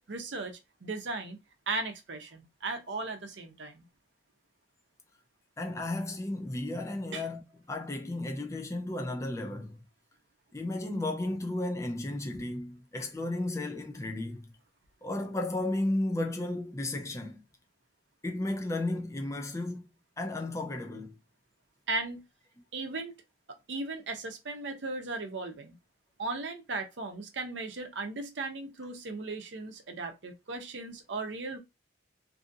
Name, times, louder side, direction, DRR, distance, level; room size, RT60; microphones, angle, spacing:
voice 1, 0.1-1.4 1.7-3.8 7.1-7.3 21.9-22.2 22.7-23.1 23.7-25.8 26.2-31.6, right 3 dB, 80° right, 0.7 m, -37 dB
voice 2, 5.6-7.4 7.7-9.7 10.5-14.4 15.0-17.4 18.2-19.8 20.2-21.1, left 2 dB, 15° left, 0.5 m, -33 dB
2.7 x 2.4 x 2.6 m
head